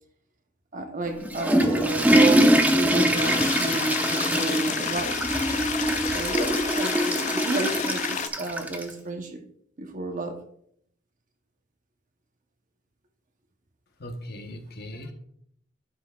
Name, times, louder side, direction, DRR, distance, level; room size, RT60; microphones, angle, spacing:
voice 1, 0.7-5.2 6.1-9.4 9.8-10.4, right 3 dB, 40° right, 0.9 m, -31 dB
Water / Toilet flush, 1.1-8.9, right 1 dB, 10° right, 0.6 m, -23 dB
sound 1, 3.1-8.3, left 8 dB, 35° left, 0.3 m, -31 dB
voice 2, 14.0-15.1, equal, 55° left, 1.0 m, -38 dB
11.5 x 5.6 x 2.4 m
head